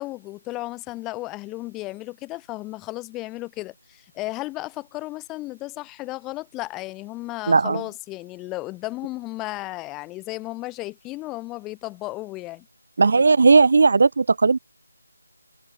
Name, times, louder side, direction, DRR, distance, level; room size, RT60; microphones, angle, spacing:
voice 1, 0.0-12.7, left 19 dB, 10° left, 8.0 m, -34 dB
voice 2, 7.5-7.8 13.0-14.6, right 4 dB, 50° right, 1.2 m, -16 dB
figure-of-eight pair, 160°, 0 cm